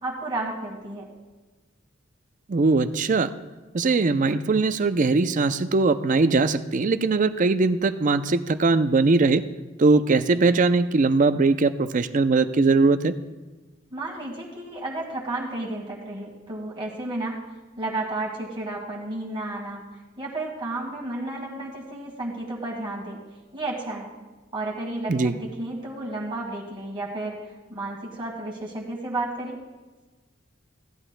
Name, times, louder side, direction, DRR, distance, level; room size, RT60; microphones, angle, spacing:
voice 1, 0.0-1.1 13.9-17.4 17.8-19.8 20.2-23.2 23.5-24.1 24.5-29.6, right 2 dB, 25° right, -4 dB, 1.8 m, -32 dB
voice 2, 2.5-3.3 3.7-9.4 9.8-13.1 25.1-25.3, right 3 dB, 40° right, 11 dB, 0.5 m, -20 dB
16.5 x 11.5 x 2.2 m, 1.2 s
head